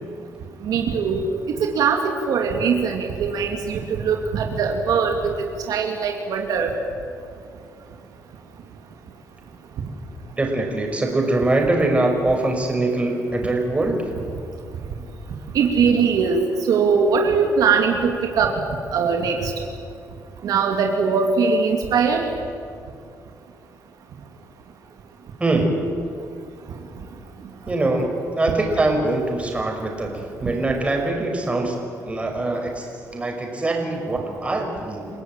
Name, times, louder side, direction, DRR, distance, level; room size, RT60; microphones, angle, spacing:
voice 1, 0.6-1.2 1.6-5.2 5.7-6.7 15.5-16.4 16.7-18.6 18.9-19.5 20.4-22.2, right 5 dB, 75° right, 3 dB, 2.5 m, -21 dB
voice 2, 10.4-14.0 25.4-25.8 27.7-28.1 28.3-35.1, right 2 dB, 20° right, 2 dB, 5.7 m, -23 dB
29.0 x 17.5 x 9.0 m, 2.3 s
cardioid pair, 115°, 6 cm